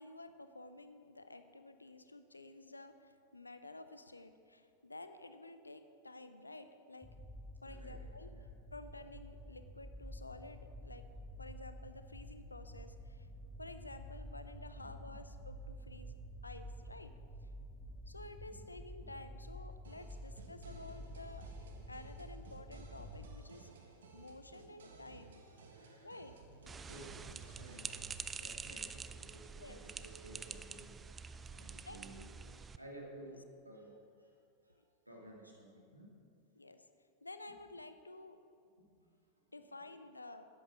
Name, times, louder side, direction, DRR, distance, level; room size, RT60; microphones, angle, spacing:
voice 1, 0.0-7.1 7.6-8.3 8.7-11.1 11.4-13.3 13.6-16.2 16.4-17.1 18.1-21.5 21.9-25.4 26.0-26.3 29.6-29.8 31.8-32.1 36.6-36.9 37.2-38.4 39.5-40.5, left 2 dB, 80° left, 10 dB, 0.7 m, -52 dB
sound 1, 7.0-23.4, equal, ahead, 1.3 m, -50 dB
voice 2, 7.6-8.0 8.3-8.5 14.8-14.9 18.5-18.6 20.5-20.8 25.7-36.1 38.8-38.9 39.8-39.9, right 1 dB, 90° right, -2 dB, 2.3 m, -56 dB
sound 2, 19.8-28.2, right 5 dB, 65° right, 1.4 m, -57 dB
sound 3, 26.7-32.8, right 5 dB, 15° right, 0.4 m, -47 dB
11.0 x 9.3 x 6.2 m, 2.4 s
figure-of-eight pair, 90°, 0 cm